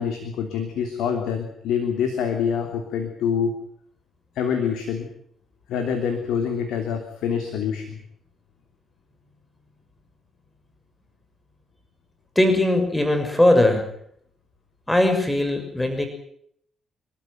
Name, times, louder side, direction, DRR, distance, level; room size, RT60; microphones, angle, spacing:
voice 1, 0.0-3.5 4.3-5.1 5.7-8.0, left 7 dB, 70° left, 5 dB, 3.1 m, -26 dB
voice 2, 12.3-13.9 14.9-16.1, left 1 dB, 10° left, 6 dB, 6.1 m, -19 dB
28.0 x 13.5 x 9.5 m, 0.69 s
hypercardioid pair, 45°, 0 cm